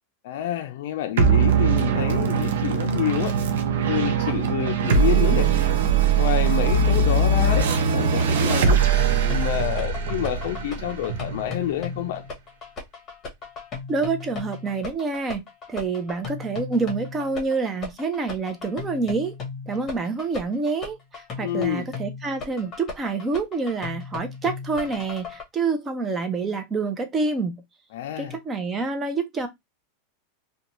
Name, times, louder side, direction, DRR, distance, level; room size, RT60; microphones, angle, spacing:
voice 1, 0.2-3.4 3.9-5.5 6.2-8.8 9.3-12.2 21.4-21.8 27.9-28.4, left 12 dB, 70° left, 0.4 m, -28 dB
sound 1, 1.2-12.0, right 5 dB, 90° right, 0.5 m, -21 dB
sound 2, 7.9-25.4, left 4 dB, 25° left, 0.9 m, -36 dB
voice 2, 13.9-15.4 15.7-19.3 19.7-27.6 28.2-29.5, right 4 dB, 20° right, 0.6 m, -27 dB
2.5 x 2.2 x 2.9 m
supercardioid pair, 145°, 0 cm